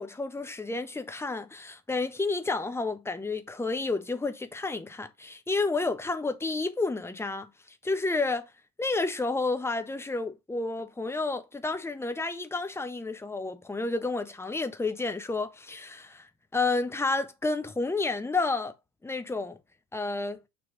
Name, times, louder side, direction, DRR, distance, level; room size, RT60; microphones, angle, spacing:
voice 1, 0.0-8.5 8.8-18.7 19.0-19.6 19.9-20.4, left 3 dB, 5° left, 0.9 m, -30 dB
6.4 x 3.5 x 4.9 m
figure-of-eight pair, 65°, 42 cm